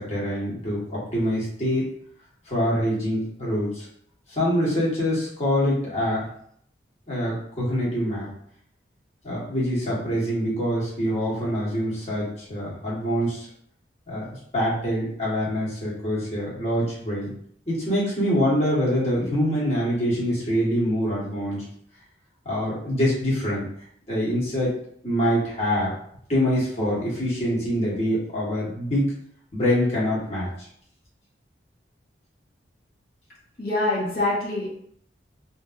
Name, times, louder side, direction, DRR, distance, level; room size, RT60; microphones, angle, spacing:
voice 1, 0.0-1.9 2.5-3.9 4.3-6.3 7.1-8.3 9.2-13.5 14.1-17.3 17.7-21.6 22.4-23.7 24.1-24.8 25.0-25.9 26.3-29.1 29.5-30.7, equal, 35° left, -7 dB, 1.3 m, -25 dB
voice 2, 33.6-34.7, left 2 dB, 55° left, -8 dB, 1.2 m, -24 dB
3.3 x 2.7 x 2.5 m, 0.66 s
head